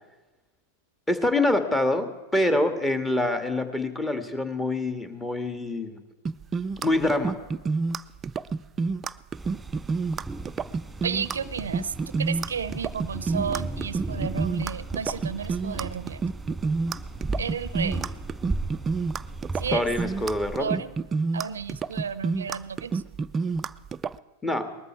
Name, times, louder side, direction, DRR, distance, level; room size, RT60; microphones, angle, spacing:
voice 1, 1.1-6.0 6.8-7.4 19.7-20.8 24.4-24.8, left 1 dB, 10° left, 7 dB, 1.9 m, -25 dB
sound 1, 6.2-24.1, right 4 dB, 25° right, 0.5 m, -29 dB
sound 2, 9.3-20.6, right 2 dB, 5° right, 2.1 m, -36 dB
voice 2, 11.0-16.2 17.4-18.1 19.6-19.8 20.6-20.9 21.3-23.0, right 7 dB, 85° right, 16 dB, 0.7 m, -32 dB
19.5 x 13.5 x 4.6 m, 1.2 s
hypercardioid pair, 105°, 0 cm